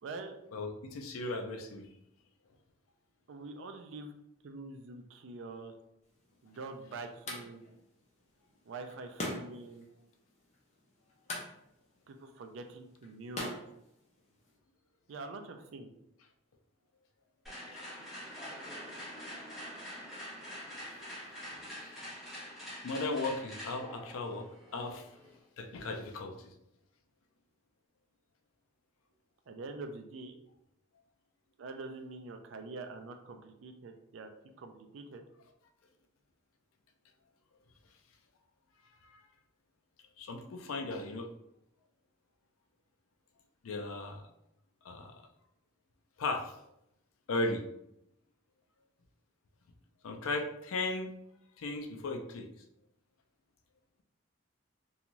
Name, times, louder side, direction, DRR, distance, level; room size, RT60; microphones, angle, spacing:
voice 1, 0.0-0.4 3.3-4.1 4.4-5.7 6.4-7.7 8.7-9.9 12.1-13.5 15.1-15.9 29.5-30.4 31.6-34.3 34.6-35.2, right 3 dB, 65° right, 6 dB, 0.4 m, -45 dB
voice 2, 0.5-1.9 17.7-18.0 18.2-18.4 21.8-22.0 22.8-25.1 25.6-26.5 39.0-39.2 40.2-41.3 43.6-44.2 44.8-45.2 46.2-46.6 47.3-47.6 50.0-51.1 51.6-52.5, left 2 dB, 85° left, 4 dB, 0.4 m, -36 dB
sound 1, 6.0-14.6, left 2 dB, 35° left, 0.6 m, -45 dB
sound 2, 17.5-25.4, equal, ahead, 0.9 m, -45 dB
2.5 x 2.3 x 3.0 m, 0.81 s
head